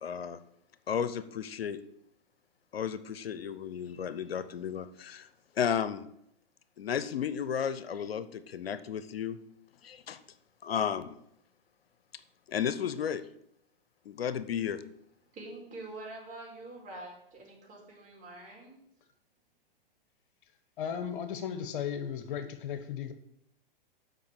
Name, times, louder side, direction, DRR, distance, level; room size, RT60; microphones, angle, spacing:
voice 1, 0.0-0.4 0.9-1.8 2.7-5.3 5.5-6.1 6.8-9.4 9.8-10.2 10.6-11.1 12.1-12.2 12.5-13.2 14.0-14.8, left 8 dB, 85° left, 13 dB, 0.7 m, -33 dB
voice 2, 15.3-18.8, right 2 dB, 25° right, -2 dB, 4.4 m, -45 dB
voice 3, 20.8-23.1, left 8 dB, 60° left, 10 dB, 1.1 m, -35 dB
7.6 x 5.7 x 7.5 m, 0.76 s
hypercardioid pair, 120°, 29 cm